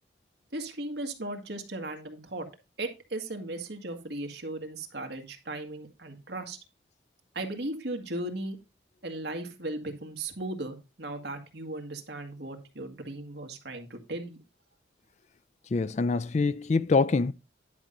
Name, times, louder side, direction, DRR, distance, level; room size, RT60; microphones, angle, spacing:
voice 1, 0.5-2.5 2.8-6.6 7.3-8.6 9.0-14.4, right 2 dB, 65° right, 1.8 m, -37 dB
voice 2, 15.7-17.3, left 4 dB, 40° left, 0.4 m, -25 dB
10.5 x 5.6 x 3.8 m
head